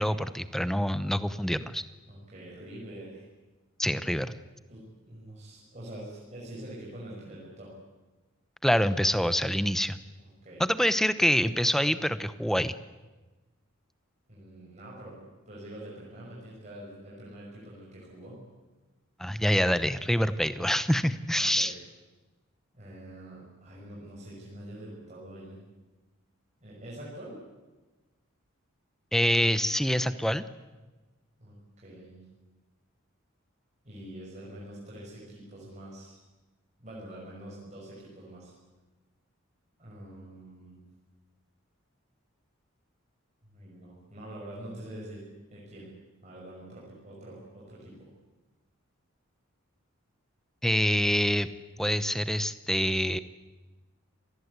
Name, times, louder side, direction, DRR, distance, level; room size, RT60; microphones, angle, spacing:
voice 1, 0.0-1.8 3.8-4.3 8.6-10.0 10.6-12.8 19.2-21.7 29.1-30.4 50.6-51.5 51.8-53.2, equal, ahead, 13 dB, 0.8 m, -26 dB
voice 2, 2.1-3.3 4.7-7.7 10.2-10.6 14.3-18.4 21.3-21.7 22.7-25.6 26.6-27.4 31.4-32.2 33.8-36.2 36.8-38.5 39.8-40.8 43.4-45.2 45.5-45.9 46.2-48.1, right 1 dB, 35° right, -5 dB, 6.0 m, -45 dB
26.5 x 19.5 x 8.2 m, 1.2 s
head